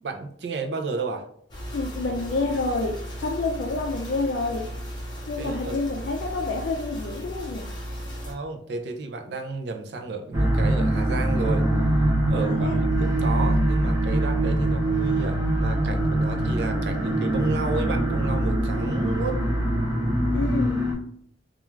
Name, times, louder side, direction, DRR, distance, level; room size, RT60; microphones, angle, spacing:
voice 1, 0.0-1.2 5.4-5.8 8.3-11.7 12.3-19.4, right 4 dB, 65° right, 5 dB, 0.4 m, -32 dB
sound 1, 1.5-8.3, equal, 25° left, 0.6 m, -36 dB
voice 2, 1.7-4.7 5.3-7.7 12.4-12.8 20.3-20.8, left 3 dB, 65° left, 0 dB, 0.3 m, -28 dB
sound 2, 10.3-20.9, right 1 dB, 20° right, 0.6 m, -23 dB
2.4 x 2.3 x 3.0 m, 0.64 s
head